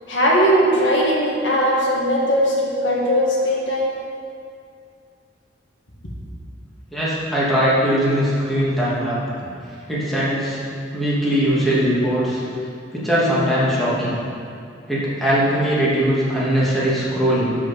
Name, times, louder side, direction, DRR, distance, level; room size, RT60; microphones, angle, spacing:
voice 1, 0.1-3.9, equal, 85° left, -4 dB, 1.9 m, -19 dB
voice 2, 6.9-9.2 9.9-10.6 10.9-12.4 12.9-14.2 14.9-17.6, equal, ahead, -9 dB, 2.1 m, -20 dB
11.5 x 5.0 x 5.2 m, 2.3 s
head